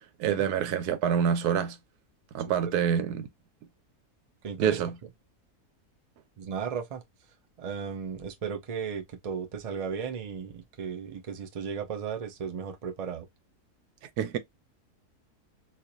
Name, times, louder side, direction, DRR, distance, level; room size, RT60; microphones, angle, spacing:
voice 1, 0.2-1.8 2.3-3.3 4.6-5.0 14.2-14.4, right 8 dB, 85° right, 1.2 m, -26 dB
voice 2, 4.4-4.8 6.4-7.0 7.6-13.3, right 6 dB, 60° right, 0.3 m, -35 dB
4.2 x 2.5 x 2.6 m
omnidirectional pair, 1.6 m